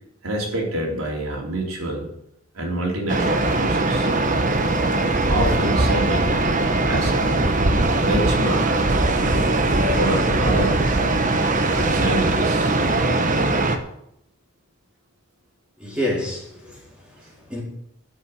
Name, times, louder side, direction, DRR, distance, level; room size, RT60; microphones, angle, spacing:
voice 1, 0.2-2.1 2.5-4.1 5.3-6.4 6.9-7.4 8.0-8.9 9.9-10.8 11.7-12.7, right 1 dB, 85° right, 3.8 m, -26 dB
sound 1, 3.1-13.8, right 2 dB, 35° right, 1.0 m, -20 dB
voice 2, 15.8-17.6, left 1 dB, 5° right, 4.2 m, -29 dB
12.5 x 6.5 x 8.3 m
head